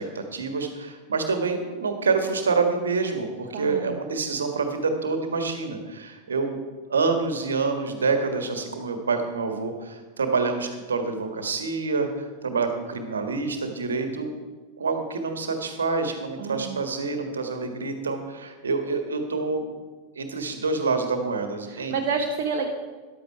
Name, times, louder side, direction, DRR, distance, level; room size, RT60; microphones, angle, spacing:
voice 1, 0.0-6.6 6.9-14.3 14.8-19.8 20.1-22.0, right 4 dB, 70° right, 6 dB, 1.7 m, -27 dB
voice 2, 3.5-4.0 16.4-16.8 21.7-22.7, right 5 dB, 50° right, 2 dB, 1.1 m, -29 dB
14.0 x 11.0 x 4.6 m, 1.4 s
figure-of-eight pair, 90°, 0 cm